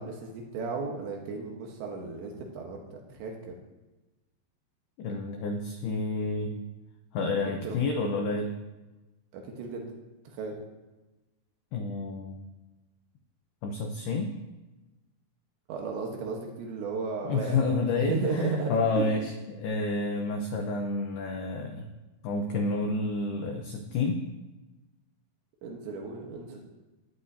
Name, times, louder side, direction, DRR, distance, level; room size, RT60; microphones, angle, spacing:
voice 1, 0.0-3.5 7.5-7.8 9.3-9.9 10.3-10.6 15.7-19.1 25.6-26.6, right 4 dB, 70° right, 1 dB, 3.2 m, -35 dB
voice 2, 5.0-6.6 7.1-8.6 11.7-12.4 13.6-14.4 17.2-21.9 22.2-24.2, left 3 dB, 80° left, 3 dB, 2.2 m, -29 dB
17.0 x 11.0 x 2.8 m, 1.1 s
omnidirectional pair, 5.7 m